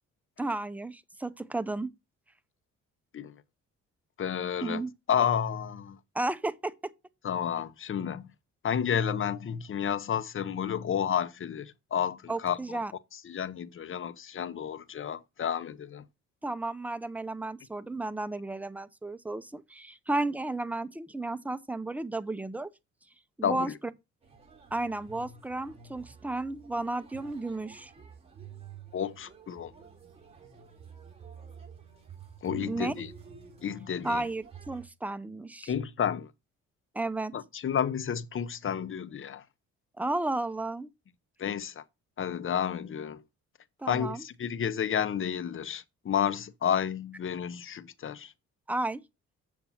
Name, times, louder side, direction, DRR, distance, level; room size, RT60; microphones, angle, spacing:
voice 1, 0.4-1.9 4.6-4.9 6.1-6.7 12.3-12.9 16.4-22.7 23.4-23.7 24.7-27.9 32.7-32.9 34.0-35.7 36.9-37.3 40.0-40.9 43.8-44.2 48.7-49.0, right 2 dB, 5° right, 0.7 m, -33 dB
voice 2, 4.2-4.8 5.1-6.0 7.2-8.3 8.6-12.6 13.1-16.1 23.4-23.8 28.9-29.7 32.4-33.1 33.6-34.2 35.7-36.3 37.3-39.4 41.4-41.8 42.2-43.2 43.9-48.3, left 8 dB, 45° left, 0.9 m, -31 dB
sound 1, 24.2-34.9, right 7 dB, 20° right, 4.2 m, -50 dB
7.6 x 7.1 x 4.2 m
cardioid pair, 90°, 30 cm